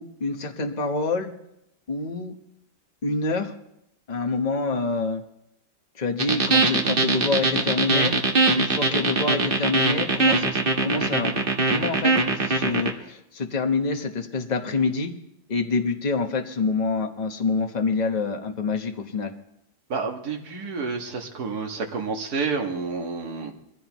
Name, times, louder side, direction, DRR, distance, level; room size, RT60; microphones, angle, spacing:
voice 1, 0.0-1.3 1.9-2.3 3.0-3.5 4.1-5.2 6.0-8.1 8.5-11.3 11.7-15.1 15.5-19.3, left 3 dB, 30° left, 5 dB, 0.9 m, -26 dB
sound 1, 6.2-12.9, right 3 dB, 30° right, 1.4 m, -21 dB
voice 2, 19.9-23.5, right 4 dB, 55° right, 2 dB, 2.1 m, -29 dB
22.5 x 15.0 x 3.0 m, 0.82 s
omnidirectional pair, 2.1 m